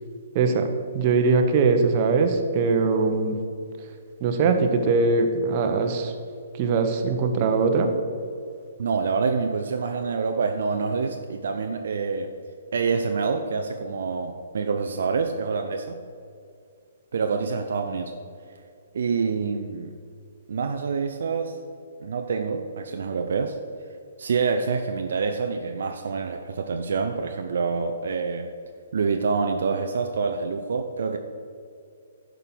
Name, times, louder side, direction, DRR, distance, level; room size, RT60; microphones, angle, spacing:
voice 1, 0.3-0.7 0.9-3.4 4.2-6.1 6.6-7.9, right 4 dB, 35° right, 6 dB, 1.0 m, -21 dB
voice 2, 8.8-12.3 12.7-16.0 17.1-18.1 18.9-19.9 20.5-21.6 22.0-23.6 24.2-28.5 28.9-31.2, right 5 dB, 60° right, 5 dB, 0.6 m, -26 dB
11.0 x 5.3 x 6.0 m, 2.4 s
figure-of-eight pair, 130°, 0 cm